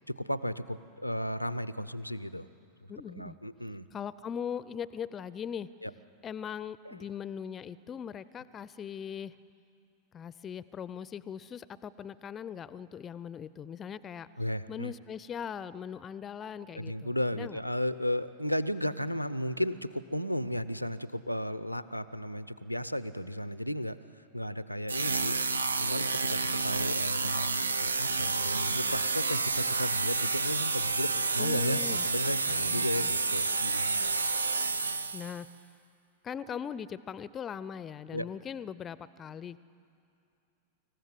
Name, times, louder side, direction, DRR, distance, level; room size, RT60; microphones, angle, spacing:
voice 1, 0.1-2.5 3.1-3.9 5.8-5.9 6.8-7.0 14.4-14.9 16.7-24.0 24.3-25.4 25.8-34.0 38.1-38.3, equal, 90° left, 15 dB, 0.6 m, -34 dB
voice 2, 2.9-3.4 3.9-5.7 6.2-9.3 10.1-14.3 14.7-17.6 31.4-33.1 35.1-35.5 36.2-39.6, left 8 dB, 25° left, 18 dB, 0.5 m, -40 dB
sound 1, 24.9-35.4, right 4 dB, 75° right, 0.5 m, -30 dB
26.0 x 15.0 x 8.0 m, 2.6 s
figure-of-eight pair, 90°, 0 cm